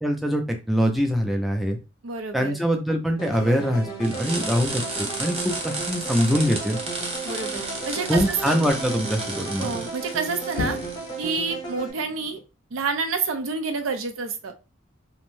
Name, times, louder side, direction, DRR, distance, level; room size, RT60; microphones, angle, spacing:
voice 1, 0.0-1.8 2.3-6.8 8.1-9.7, equal, ahead, 2 dB, 0.3 m, -23 dB
voice 2, 2.0-2.6 7.2-8.6 9.6-10.8 11.2-12.4 12.7-14.5, right 4 dB, 85° right, 6 dB, 0.5 m, -28 dB
sound 1, 3.2-11.9, right 4 dB, 20° left, 0.7 m, -35 dB
sound 2, 4.0-11.3, right 2 dB, 30° right, 0.6 m, -33 dB
sound 3, 8.1-8.7 10.6-11.4, left 4 dB, 90° left, 0.3 m, -33 dB
2.6 x 2.0 x 3.0 m, 0.30 s
head